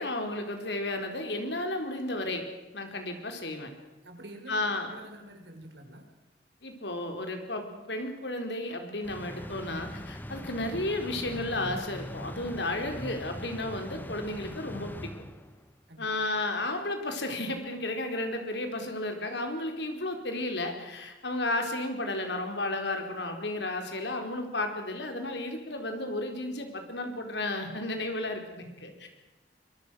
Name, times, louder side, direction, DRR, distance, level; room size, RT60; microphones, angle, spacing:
voice 1, 0.0-2.4 2.7-3.7 4.5-4.9 6.6-15.1 16.0-29.1, left 2 dB, 80° left, 5 dB, 4.6 m, -33 dB
voice 2, 4.0-6.0 15.9-16.1, right 1 dB, 75° right, 5 dB, 5.0 m, -47 dB
sound 1, 9.0-15.7, left 1 dB, 10° left, 1.0 m, -41 dB
26.0 x 23.5 x 6.5 m, 1.1 s
head